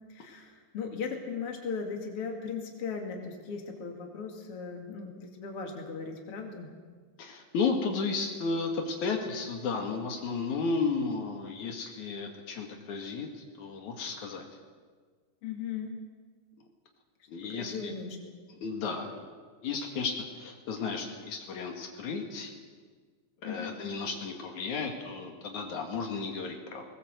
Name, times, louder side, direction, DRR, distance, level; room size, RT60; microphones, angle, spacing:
voice 1, 0.1-6.7 15.4-16.0 17.4-18.3 23.4-23.8, left 5 dB, 50° left, 2 dB, 3.2 m, -38 dB
voice 2, 7.2-13.3 13.6-14.4 17.3-17.9 18.5-19.2 19.6-22.5 23.4-26.9, left 4 dB, 80° left, 3 dB, 3.3 m, -33 dB
19.5 x 19.5 x 7.9 m, 1.5 s
omnidirectional pair, 3.4 m